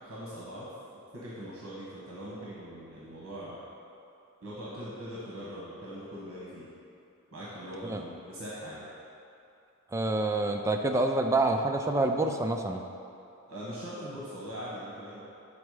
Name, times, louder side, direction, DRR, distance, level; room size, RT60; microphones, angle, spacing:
voice 1, 0.0-0.7 1.1-3.6 4.4-6.7 7.3-8.9 13.5-15.2, equal, 65° right, -7 dB, 1.2 m, -41 dB
voice 2, 9.9-12.8, right 2 dB, 15° right, 4 dB, 0.3 m, -27 dB
7.1 x 4.4 x 4.8 m, 2.7 s
head